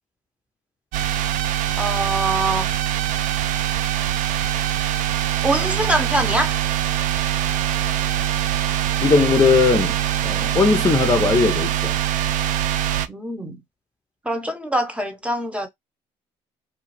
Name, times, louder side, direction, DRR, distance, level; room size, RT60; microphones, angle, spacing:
sound 1, 0.9-13.1, right 11 dB, 70° right, 0.4 m, -23 dB
voice 1, 1.8-2.7 5.4-6.6 13.1-13.6 14.2-15.7, right 1 dB, 10° right, 1.2 m, -24 dB
voice 2, 9.0-10.0 10.2-12.0, left 4 dB, 25° left, 0.6 m, -18 dB
2.7 x 2.3 x 3.2 m
supercardioid pair, 65°, 14 cm